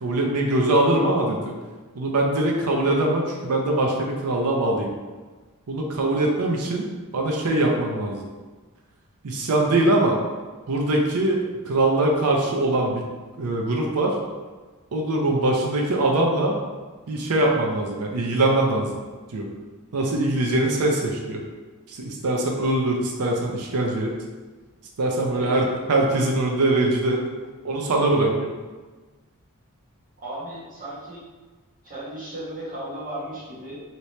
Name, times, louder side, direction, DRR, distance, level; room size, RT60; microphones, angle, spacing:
voice 1, 0.0-1.5 1.9-4.9 5.7-6.9 7.1-8.2 9.2-10.2 10.7-13.0 13.4-14.2 14.9-16.6 17.1-19.0 19.3-19.5 19.9-21.4 21.9-24.1 25.0-27.2 27.6-28.5, right 2 dB, 85° right, 0 dB, 0.5 m, -22 dB
voice 2, 25.3-26.0 30.2-31.2 31.8-33.8, right 1 dB, 40° right, -9 dB, 1.3 m, -35 dB
2.9 x 2.8 x 3.2 m, 1.3 s
head